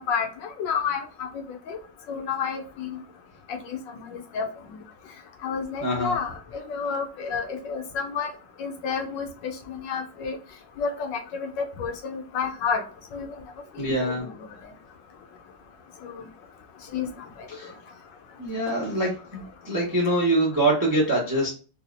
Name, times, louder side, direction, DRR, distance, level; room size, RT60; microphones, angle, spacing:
voice 1, 0.0-1.8 2.1-3.0 3.5-4.8 5.4-8.3 8.6-10.4 10.8-12.8 13.1-13.4 13.8-14.3 16.0-16.3 16.9-17.1 17.4-17.5, left 6 dB, 75° left, 5 dB, 1.2 m, -30 dB
voice 2, 5.8-6.1 13.8-14.2 17.5-17.7 18.4-21.5, right 1 dB, 30° right, -3 dB, 0.4 m, -24 dB
4.0 x 2.3 x 2.5 m, 0.35 s
omnidirectional pair, 2.1 m